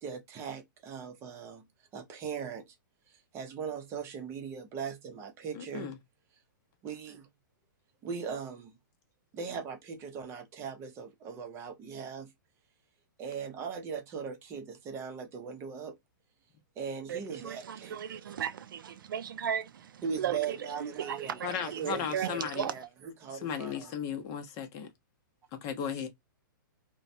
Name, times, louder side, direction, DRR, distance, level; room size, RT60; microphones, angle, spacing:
voice 1, 0.0-1.7 1.9-2.7 3.1-5.9 6.8-7.3 8.0-8.7 9.3-12.3 13.2-16.0 16.8-18.0 20.0-23.9, right 6 dB, 25° right, 0.7 m, -39 dB
voice 2, 5.5-5.9 21.4-22.7 23.3-24.9 25.6-26.1, left 8 dB, 30° left, 0.8 m, -36 dB
voice 3, 17.1-22.9, right 9 dB, 80° right, 0.5 m, -36 dB
3.0 x 2.2 x 2.6 m
hypercardioid pair, 145°, 11 cm